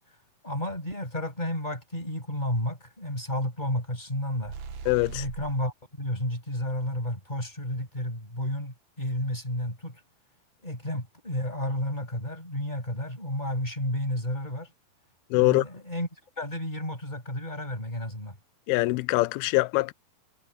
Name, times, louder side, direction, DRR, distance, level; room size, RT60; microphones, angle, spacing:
voice 1, 0.4-4.6 5.1-10.0 10.6-14.7 15.4-16.1 16.4-18.4, left 1 dB, 10° left, 7.6 m, -31 dB
sound 1, 4.4-5.7, right 5 dB, 75° right, 4.3 m, -39 dB
voice 2, 4.9-5.2 15.3-15.6 18.7-19.9, left 22 dB, 85° left, 2.5 m, -23 dB
omnidirectional pair, 4.4 m